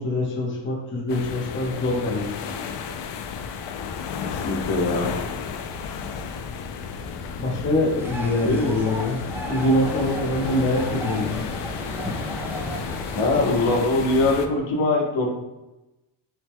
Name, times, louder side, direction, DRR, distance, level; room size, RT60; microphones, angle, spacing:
voice 1, 0.0-2.4 7.4-9.2 9.5-11.5, left 1 dB, 25° left, -2 dB, 0.8 m, -24 dB
sound 1, 1.1-14.5, left 6 dB, 70° left, 0.5 m, -33 dB
voice 2, 4.4-5.2 8.4-8.7 13.1-15.3, left 2 dB, 90° left, 0 dB, 1.0 m, -22 dB
sound 2, 8.0-13.8, equal, 5° right, 0.4 m, -35 dB
5.6 x 2.2 x 3.5 m, 0.99 s
cardioid pair, 170°, 44 cm